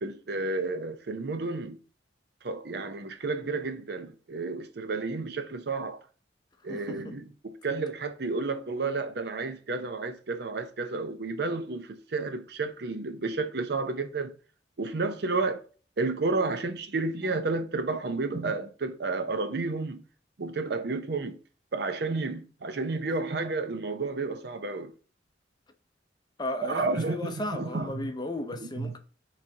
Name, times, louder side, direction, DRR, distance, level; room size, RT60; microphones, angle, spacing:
voice 1, 0.0-1.8 2.4-6.0 6.6-14.4 14.8-15.6 16.0-20.0 20.4-21.4 21.7-24.9 26.6-28.1 28.8-28.9, right 3 dB, 60° right, 0.6 m, -31 dB
voice 2, 6.7-7.1 26.4-29.0, left 1 dB, 25° left, 0.6 m, -35 dB
5.9 x 3.3 x 2.7 m
head